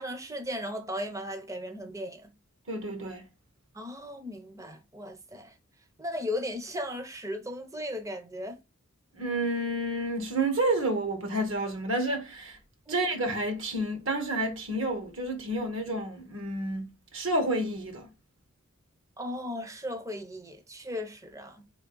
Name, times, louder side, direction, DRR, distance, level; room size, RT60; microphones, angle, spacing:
voice 1, 0.0-2.3 3.7-5.6 6.0-8.6 12.9-13.0 19.2-21.6, left 1 dB, 15° right, 0.6 m, -36 dB
voice 2, 2.7-3.2 9.2-12.6 12.9-18.1, right 1 dB, 60° right, 1.2 m, -30 dB
3.6 x 3.2 x 3.8 m
head